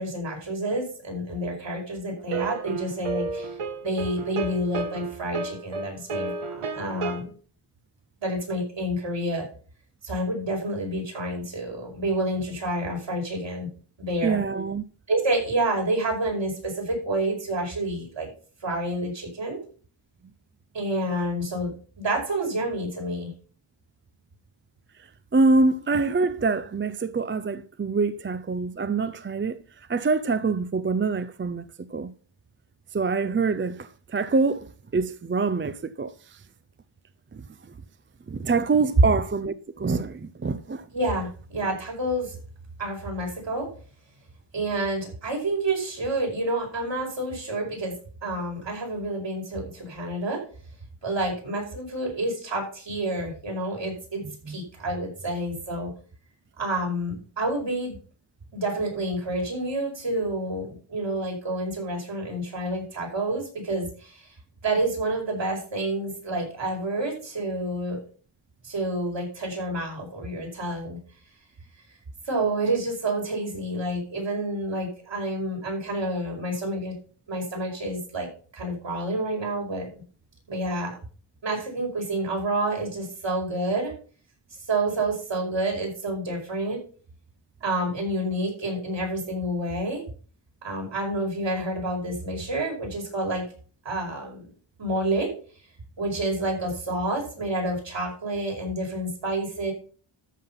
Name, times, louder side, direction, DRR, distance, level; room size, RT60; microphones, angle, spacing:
voice 1, 0.0-3.5 3.8-7.3 8.2-9.4 10.0-13.7 14.0-14.4 15.1-18.3 18.6-19.6 20.7-21.7 22.0-23.3 39.0-39.1 40.9-42.3 42.8-43.7 44.5-47.9 48.2-50.4 51.0-55.9 56.6-58.0 58.5-64.3 64.6-68.0 68.6-71.0 72.3-77.0 77.3-78.3 78.5-79.9 80.5-81.0 81.4-83.9 84.7-86.8 87.6-90.0 90.6-93.4 93.9-94.5 94.8-95.3 96.0-99.7, right 1 dB, 60° right, 5.3 m, -28 dB
sound 1, 2.3-7.2, right 4 dB, 80° right, 1.8 m, -32 dB
voice 2, 14.2-14.8 25.3-29.6 29.9-32.1 32.9-36.4 37.3-37.4 38.3-40.9 54.5-54.6, right 4 dB, 25° right, 0.5 m, -25 dB
13.0 x 5.7 x 5.7 m
wide cardioid pair, 125°, 50 cm